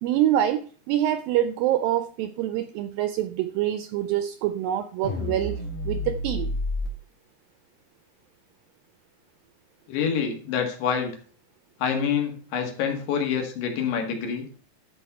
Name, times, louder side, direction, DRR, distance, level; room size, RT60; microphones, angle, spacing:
voice 1, 0.0-6.5, right 12 dB, 85° right, 2.1 m, -26 dB
sound 1, 5.0-6.9, left 1 dB, 65° left, 3.3 m, -29 dB
voice 2, 9.9-11.1 11.8-14.4, left 7 dB, 80° left, 3.8 m, -26 dB
12.0 x 4.6 x 5.5 m
omnidirectional pair, 4.7 m